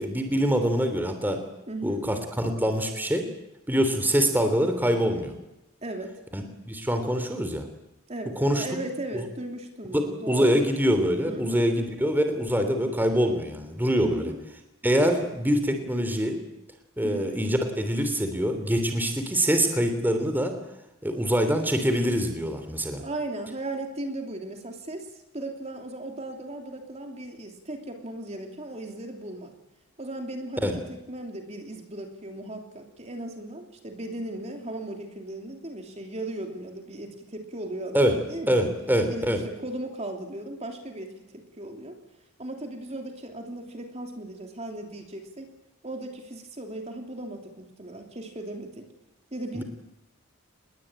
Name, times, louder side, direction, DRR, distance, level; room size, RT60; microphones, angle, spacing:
voice 1, 0.0-1.4 1.8-3.3 3.7-5.3 6.3-7.6 8.4-8.6 9.9-14.3 14.8-16.4 17.0-20.5 21.0-23.0 30.6-30.7 37.9-38.2 38.5-39.4 49.5-49.6, equal, 10° right, 7 dB, 3.1 m, -24 dB
voice 2, 1.7-2.0 5.8-6.2 8.1-10.7 11.2-11.6 14.0-14.4 17.0-17.4 23.0-29.5 30.0-38.6 39.1-41.2 41.6-42.0 42.4-45.5 45.8-48.9 49.3-49.6, right 1 dB, 30° right, 4 dB, 3.1 m, -37 dB
28.0 x 21.5 x 9.0 m, 0.92 s
head